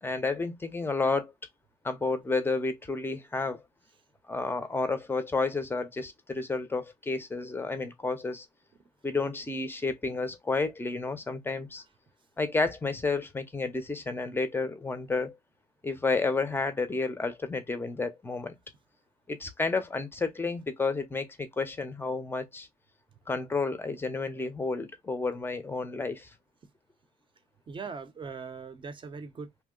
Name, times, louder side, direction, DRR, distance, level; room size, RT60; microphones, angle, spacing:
voice 1, 0.0-1.3 1.8-3.6 4.3-8.5 9.0-11.8 12.4-15.4 15.8-18.5 19.3-22.7 23.3-26.3, left 3 dB, 15° left, 0.6 m, -31 dB
voice 2, 27.7-29.6, right 5 dB, 30° right, 0.7 m, -40 dB
2.7 x 2.0 x 3.7 m
cardioid pair, 115°, 17 cm